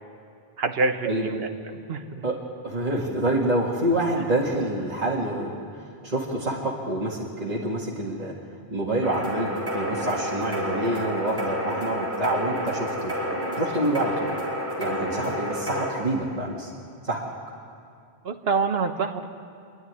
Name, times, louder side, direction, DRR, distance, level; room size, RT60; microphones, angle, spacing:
voice 1, 0.6-2.2 18.2-19.3, right 4 dB, 70° right, 6 dB, 1.3 m, -26 dB
voice 2, 2.6-8.3 8.7-13.1 13.5-14.3 14.8-16.7 17.0-17.2, right 1 dB, 40° right, -5 dB, 2.1 m, -27 dB
sound 1, 9.0-15.9, equal, 15° right, 4.0 m, -30 dB
27.5 x 11.0 x 9.6 m, 2.4 s
omnidirectional pair, 1.1 m